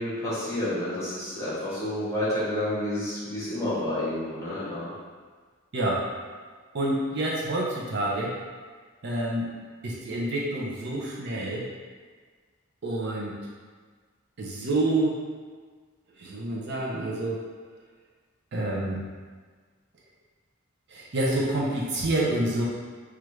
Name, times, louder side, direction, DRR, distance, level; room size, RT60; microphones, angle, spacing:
voice 1, 0.0-4.9, left 1 dB, 15° left, -10 dB, 0.9 m, -29 dB
voice 2, 5.7-6.0 6.7-8.3 9.0-9.5 9.8-11.7 12.8-13.4 14.4-15.2 16.2-17.4 18.5-19.0 20.9-22.6, right 1 dB, 50° right, -4 dB, 0.5 m, -28 dB
3.2 x 2.4 x 3.0 m, 1.5 s
head